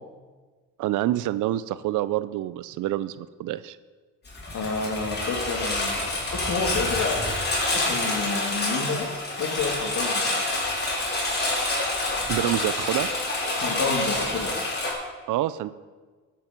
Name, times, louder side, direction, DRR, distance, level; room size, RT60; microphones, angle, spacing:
voice 1, 0.8-3.8 12.3-13.1 15.3-15.7, right 14 dB, 80° right, 16 dB, 0.5 m, -27 dB
Engine, 4.3-14.9, left 2 dB, 35° left, 4.1 m, -27 dB
voice 2, 4.5-9.1 9.4-10.4 13.6-14.5, left 4 dB, 65° left, 1 dB, 2.8 m, -30 dB
14.0 x 7.7 x 5.3 m, 1.4 s
cardioid pair, 90°, 30 cm